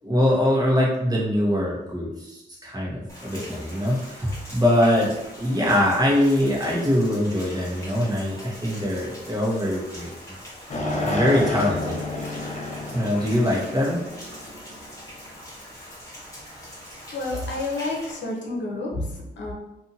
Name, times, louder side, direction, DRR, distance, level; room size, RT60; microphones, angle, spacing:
voice 1, 0.0-5.1 5.4-10.1 11.0-12.0 12.9-14.0, left 1 dB, 20° right, -5 dB, 1.1 m, -23 dB
Rain, 3.1-18.2, equal, 15° left, 1.2 m, -42 dB
sound 1, 10.7-15.1, left 2 dB, 40° left, 0.6 m, -30 dB
voice 2, 17.1-19.5, left 2 dB, 85° left, -1 dB, 0.7 m, -29 dB
2.7 x 2.5 x 2.8 m, 0.96 s
cardioid pair, 65°, 18 cm